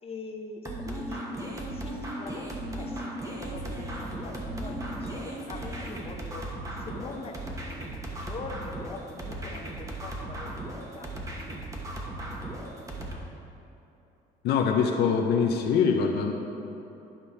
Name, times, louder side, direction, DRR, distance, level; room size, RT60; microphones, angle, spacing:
voice 1, 0.0-7.4 7.9-11.1 12.9-13.3, left 4 dB, 35° left, 2 dB, 0.9 m, -43 dB
sound 1, 0.6-13.1, right 1 dB, 20° right, 1.3 m, -36 dB
voice 2, 14.4-16.3, left 6 dB, 80° left, 3 dB, 0.7 m, -23 dB
11.5 x 5.3 x 4.3 m, 3.0 s
cardioid pair, 110°, 17 cm